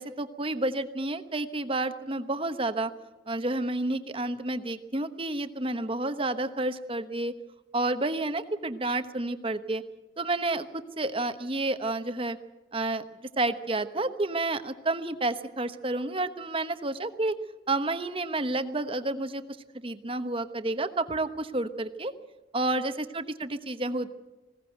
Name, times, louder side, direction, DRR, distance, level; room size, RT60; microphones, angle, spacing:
voice 1, 0.0-2.9 3.3-7.4 7.7-9.8 10.2-12.4 12.7-13.0 13.4-17.3 17.7-19.4 19.8-22.1 22.5-24.1, right 2 dB, 30° right, 10 dB, 1.1 m, -30 dB
20.5 x 17.5 x 7.9 m, 1.1 s
head